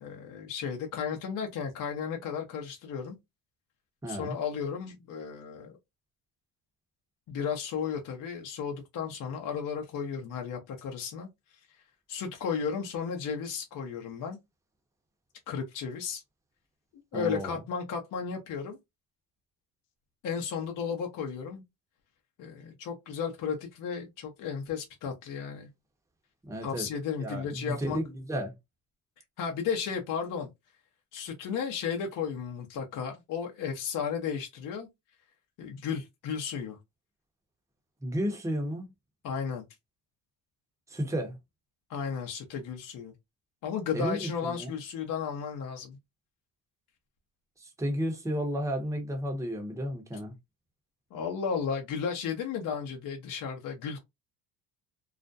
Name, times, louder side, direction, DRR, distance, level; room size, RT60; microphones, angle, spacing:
voice 1, 0.0-3.1 4.1-5.7 7.3-11.3 12.1-14.4 15.5-16.2 17.1-18.8 20.2-21.6 22.4-25.7 26.6-28.0 29.4-30.5 31.1-34.9 35.6-36.8 39.2-39.6 41.9-43.1 43.6-46.0 51.1-54.0, left 6 dB, 45° left, 0.7 m, -34 dB
voice 2, 4.0-4.4 17.1-17.6 26.5-26.9 27.2-28.5 38.0-38.9 40.9-41.4 43.9-44.7 47.6-50.3, equal, 5° right, 0.7 m, -32 dB
2.4 x 2.1 x 2.5 m
supercardioid pair, 100°, 43 cm